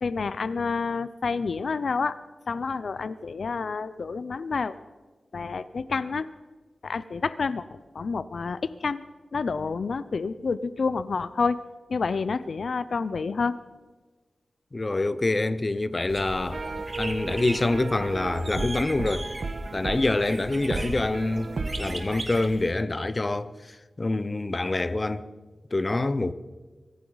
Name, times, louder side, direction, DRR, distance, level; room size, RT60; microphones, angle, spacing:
voice 1, 0.0-2.2 2.5-4.8 5.3-6.3 6.8-7.6 7.9-9.0 9.3-11.6 11.9-13.6, left 4 dB, 70° left, 0.5 m, -28 dB
voice 2, 14.7-16.6 17.0-19.3 19.7-25.3 25.7-26.3, left 2 dB, 30° left, 0.7 m, -26 dB
sound 1, 16.1-22.7, right 1 dB, 25° right, 2.0 m, -38 dB
sound 2, 16.5-22.0, right 3 dB, 55° right, 1.3 m, -34 dB
24.5 x 14.5 x 4.0 m
wide cardioid pair, 120°, 0 cm